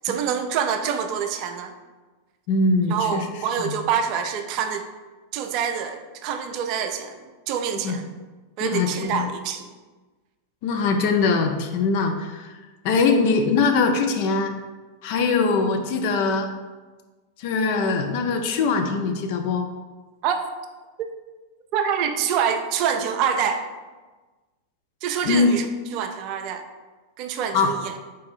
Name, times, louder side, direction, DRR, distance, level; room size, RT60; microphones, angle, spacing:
voice 1, 0.0-1.7 2.9-4.8 5.3-7.2 7.5-8.1 8.6-9.7 20.2-20.4 21.7-23.6 25.0-25.7 25.9-26.6 27.2-28.0, right 7 dB, 40° right, 6 dB, 0.4 m, -26 dB
voice 2, 2.5-3.2 3.6-3.8 7.8-8.0 8.6-9.2 10.6-12.5 12.8-14.5 15.0-16.5 17.4-19.6 25.2-25.6 27.5-27.7, left 4 dB, 45° left, 5 dB, 0.4 m, -22 dB
3.7 x 2.6 x 4.0 m, 1.3 s
figure-of-eight pair, 90°, 0 cm